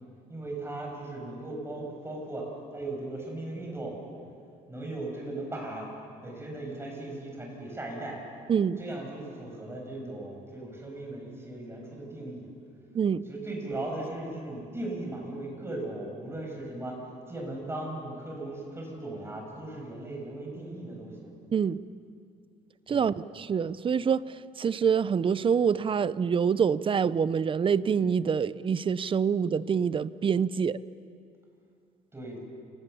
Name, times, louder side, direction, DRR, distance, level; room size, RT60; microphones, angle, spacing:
voice 1, 0.3-2.5 2.7-4.0 4.7-5.9 6.2-8.2 8.8-12.5 13.2-17.0 17.3-21.3 22.9-23.1 32.1-32.4, right 2 dB, 15° right, -1 dB, 7.4 m, -37 dB
voice 2, 22.9-24.2 24.6-30.8, right 7 dB, 30° right, 17 dB, 0.6 m, -26 dB
28.5 x 18.5 x 7.0 m, 2.4 s
cardioid pair, 110°, 17 cm